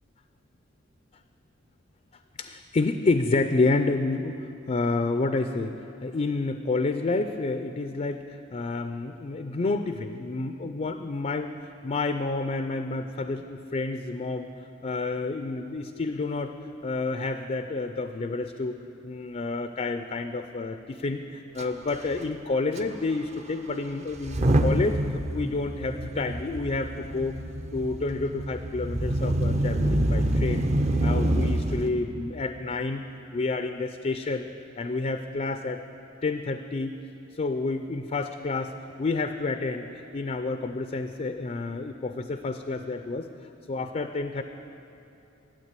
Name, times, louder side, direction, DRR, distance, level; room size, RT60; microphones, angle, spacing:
voice 1, 2.4-4.4 4.7-5.8 6.0-11.5 11.8-14.5 14.8-16.5 16.8-27.3 27.7-30.6 31.0-33.0 33.3-34.5 34.8-35.8 36.2-36.9 37.3-43.3 43.7-44.4, left 3 dB, 35° left, 8 dB, 0.4 m, -29 dB
Motor vehicle (road) / Engine starting / Accelerating revving vroom, 21.6-21.7 21.9-22.1 22.8-22.9 24.1-31.9, right 1 dB, 35° right, 0.6 m, -26 dB
12.5 x 8.8 x 8.2 m, 2.9 s
head